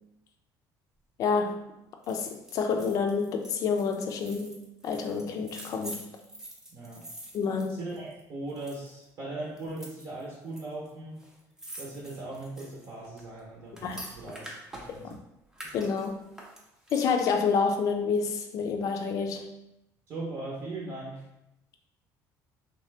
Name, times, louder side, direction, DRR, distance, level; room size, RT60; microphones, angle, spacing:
voice 1, 1.2-1.6 2.1-4.5 4.8-6.0 7.3-7.8 13.8-14.1 14.9-15.2 15.7-16.3 16.9-19.5, left 5 dB, 55° left, 4 dB, 0.4 m, -28 dB
sound 1, 2.0-8.2 8.5-9.0 9.6-10.6 10.9-11.0 11.2-15.1 15.5-17.3 17.7-17.8, equal, 10° right, 0.5 m, -46 dB
voice 2, 6.7-7.0 7.7-11.2 11.8-15.1 20.1-21.2, right 2 dB, 45° right, -4 dB, 0.8 m, -39 dB
3.1 x 2.8 x 3.3 m, 0.87 s
cardioid pair, 165°, 7 cm